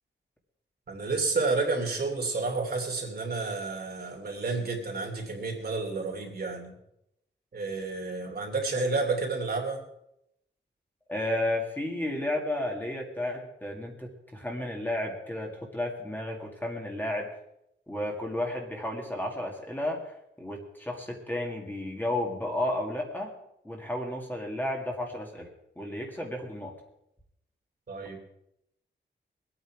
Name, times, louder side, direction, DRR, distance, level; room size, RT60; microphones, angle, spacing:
voice 1, 0.9-6.8 7.5-9.8 27.9-28.3, right 3 dB, 55° right, 1 dB, 2.9 m, -30 dB
voice 2, 11.1-17.3 17.9-20.0 20.4-23.3 23.6-25.5 25.8-26.7, left 1 dB, 10° left, 0 dB, 2.1 m, -32 dB
22.5 x 8.9 x 4.7 m, 0.80 s
wide cardioid pair, 165°, 19 cm